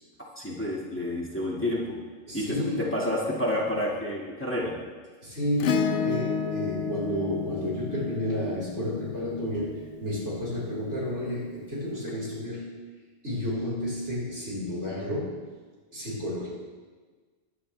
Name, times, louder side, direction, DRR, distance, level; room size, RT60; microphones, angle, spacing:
voice 1, 0.4-1.8 2.3-4.8, left 1 dB, 10° left, -4 dB, 2.0 m, -29 dB
voice 2, 2.3-2.9 5.2-12.7 13.2-15.4 15.9-16.5, left 1 dB, 80° right, -6 dB, 4.8 m, -31 dB
Acoustic guitar / Strum, 5.6-10.2 12.1-12.2, left 6 dB, 90° left, 1.0 m, -31 dB
16.5 x 11.0 x 3.4 m, 1.4 s
omnidirectional pair, 1.2 m